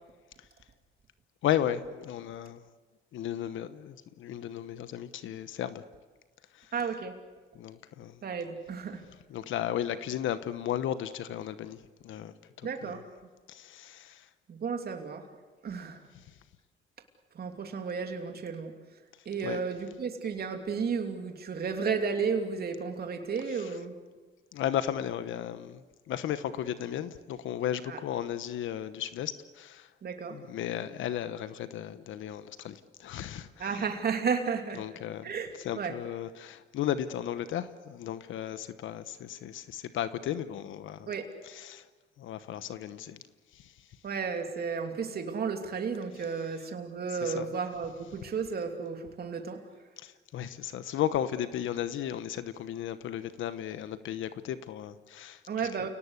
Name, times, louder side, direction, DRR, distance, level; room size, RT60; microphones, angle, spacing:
voice 1, 1.4-2.6 3.1-5.8 6.5-6.7 7.5-8.2 9.3-12.9 13.5-14.3 16.1-16.3 19.4-19.6 23.5-23.8 24.5-29.9 30.3-33.8 34.8-35.3 35.6-41.1 41.4-41.9 42.2-43.2 43.5-43.9 47.0-47.5 50.0-55.4 55.8-55.9, left 10 dB, 80° left, 1.1 m, -35 dB
voice 2, 6.7-7.2 8.2-9.0 12.6-13.0 14.5-15.3 15.6-16.0 17.3-18.7 19.2-24.0 27.9-28.0 30.0-30.4 33.6-34.8 35.2-35.5 35.8-36.0 41.1-41.3 44.0-49.6 55.5-55.9, right 5 dB, 50° right, 2.9 m, -33 dB
29.0 x 18.5 x 8.2 m
cardioid pair, 90°, 20 cm